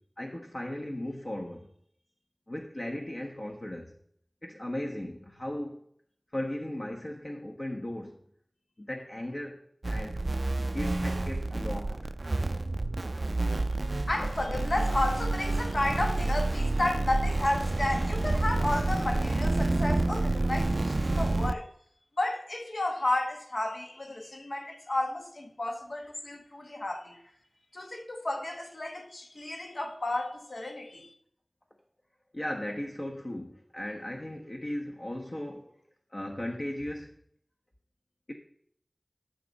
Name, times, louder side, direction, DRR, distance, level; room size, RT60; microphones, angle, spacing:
voice 1, 0.2-1.7 2.5-3.9 4.4-5.8 6.3-8.2 8.8-9.6 9.9-10.2 10.6-12.1 12.4-12.8 32.3-35.8 36.1-37.2 38.3-38.4, left 1 dB, 45° left, 1.2 m, -37 dB
sound 1, 9.8-21.5, right 2 dB, 50° right, 0.4 m, -29 dB
voice 2, 14.1-21.7 22.2-27.2 27.7-31.1, left 1 dB, 65° left, 1.4 m, -32 dB
13.0 x 6.7 x 4.1 m
wide cardioid pair, 55°, 0 cm